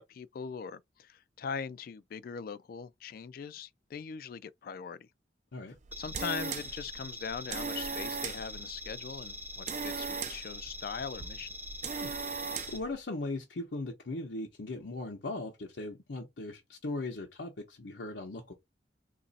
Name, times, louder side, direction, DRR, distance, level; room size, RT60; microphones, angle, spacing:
voice 1, 0.0-5.1 6.0-11.5, left 6 dB, 55° left, 0.3 m, -41 dB
sound 1, 5.8-12.9, right 5 dB, 40° right, 0.4 m, -39 dB
sound 2, 5.9-12.8, left 1 dB, 10° right, 0.7 m, -44 dB
voice 2, 12.7-18.5, left 2 dB, 90° left, 0.8 m, -38 dB
2.9 x 2.5 x 4.0 m
head